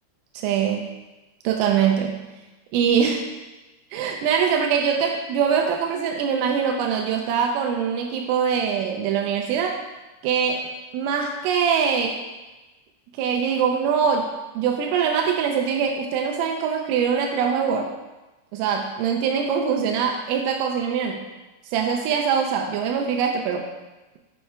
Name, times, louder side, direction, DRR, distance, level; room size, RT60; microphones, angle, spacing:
voice 1, 0.4-0.9 1.4-2.2 2.7-3.3 3.9-9.8 10.2-12.2 13.2-14.3 14.6-17.9 18.5-21.3 21.7-23.7, right 7 dB, 90° right, 2 dB, 3.1 m, -23 dB
8.3 x 5.4 x 2.2 m, 1.1 s
omnidirectional pair, 5.6 m